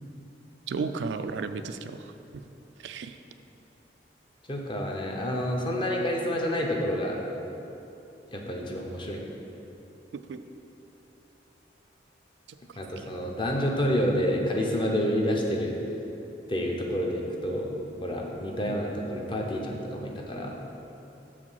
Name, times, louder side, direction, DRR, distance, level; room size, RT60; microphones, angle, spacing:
voice 1, 0.7-2.0 2.8-3.1 10.1-10.4 18.7-18.8, right 4 dB, 80° right, 9 dB, 0.3 m, -33 dB
voice 2, 4.5-7.2 8.3-9.2 12.8-15.8 16.5-17.7 18.0-20.6, equal, 30° left, 0 dB, 0.7 m, -28 dB
6.6 x 5.0 x 5.6 m, 2.9 s
head